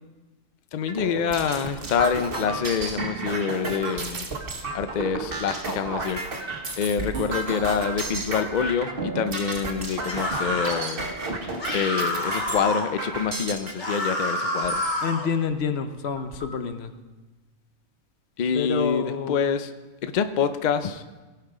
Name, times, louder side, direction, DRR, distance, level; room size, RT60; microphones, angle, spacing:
voice 1, 0.7-4.3 4.7-6.2 6.8-11.1 11.7-15.0 18.4-19.7 20.0-21.0, left 6 dB, 75° left, 10 dB, 0.4 m, -26 dB
sound 1, 0.9-13.7 14.4-14.9 15.5-15.6 15.9-16.5, right 3 dB, 40° right, 1.4 m, -32 dB
sound 2, 10.1-10.9 11.6-12.9 13.8-15.3, left 1 dB, 35° left, 1.6 m, -28 dB
voice 2, 15.0-16.9 18.5-19.4, left 6 dB, 55° left, 9 dB, 0.9 m, -28 dB
17.5 x 5.9 x 4.9 m, 1.2 s
omnidirectional pair, 1.5 m